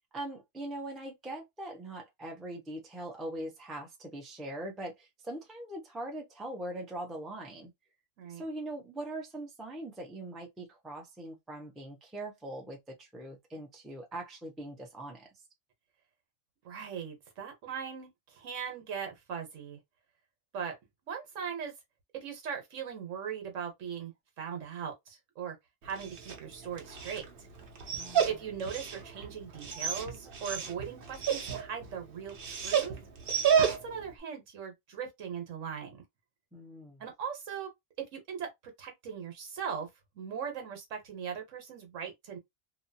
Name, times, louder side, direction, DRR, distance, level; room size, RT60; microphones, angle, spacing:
voice 1, 0.1-7.7 8.3-15.3 27.9-28.4 36.5-37.0, right 1 dB, ahead, 0.5 m, -41 dB
voice 2, 16.6-19.8 20.5-20.7 21.1-21.7 22.2-25.6 25.8-27.2 28.2-32.9 33.6-36.0 37.0-37.7 38.1-38.5 38.8-39.9 40.1-42.4, right 7 dB, 70° right, 1.2 m, -39 dB
Dog, 25.8-34.1, right 7 dB, 50° right, 0.8 m, -32 dB
2.8 x 2.2 x 2.6 m
omnidirectional pair, 1.4 m